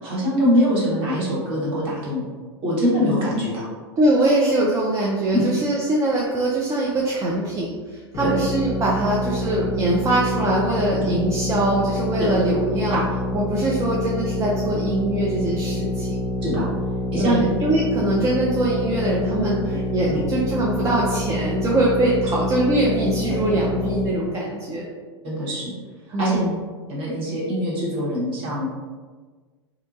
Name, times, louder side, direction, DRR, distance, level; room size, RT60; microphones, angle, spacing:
voice 1, 0.0-2.2 2.6-3.7 5.3-5.4 8.2-8.3 12.2-12.3 16.4-16.7 17.1-17.4 20.1-20.2 25.2-25.7 26.2-26.4 26.9-28.7, equal, 40° right, -7 dB, 1.3 m, -23 dB
voice 2, 4.0-13.0 13.3-16.2 17.2-24.9 26.1-26.6, right 1 dB, 20° right, -4 dB, 0.4 m, -22 dB
sound 1, 8.1-24.1, left 2 dB, 30° left, 0.6 m, -27 dB
2.7 x 2.2 x 2.6 m, 1.4 s
hypercardioid pair, 95°, 14 cm